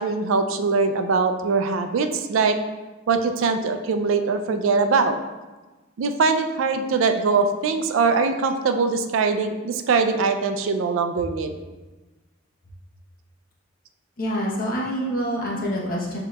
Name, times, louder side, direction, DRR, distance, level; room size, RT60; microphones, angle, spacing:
voice 1, 0.0-2.6 3.1-5.2 6.0-11.5 14.9-15.0 15.5-15.7, right 4 dB, 80° right, 7 dB, 0.4 m, -22 dB
voice 2, 14.2-16.2, equal, 45° left, -4 dB, 0.9 m, -26 dB
6.8 x 2.8 x 2.3 m, 1.2 s
head